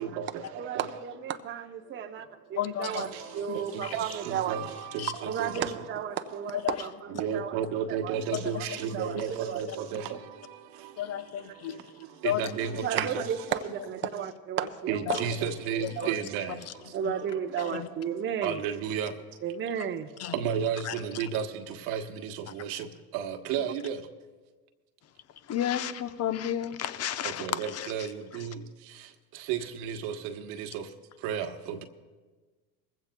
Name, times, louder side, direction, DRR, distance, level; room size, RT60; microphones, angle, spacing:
voice 1, 0.0-0.9 1.9-2.6 2.9-5.8 6.3-6.5 7.1-11.0 11.4-13.5 14.9-17.8 18.4-19.2 20.3-24.1 27.2-31.8, right 8 dB, 65° right, 1.1 m, -34 dB
voice 2, 0.5-3.1 3.3-4.6 5.3-7.6 7.9-8.1 8.4-8.7 8.9-9.6 12.8-15.2 15.8-16.1 16.9-18.6 19.4-20.1, right 8 dB, 25° right, 0.7 m, -33 dB
voice 3, 2.5-3.1 3.5-4.0 5.0-5.1 6.5-6.8 8.3-8.4 8.7-8.8 9.7-9.8 11.0-11.9 12.2-12.5 15.1-15.2 16.0-16.1 16.7-17.1 17.6-17.9 19.8-19.9 20.2-20.4 20.8-21.3 25.4-28.5, left 11 dB, 35° left, 0.8 m, -33 dB
21.5 x 15.5 x 2.2 m
hypercardioid pair, 90°, 44 cm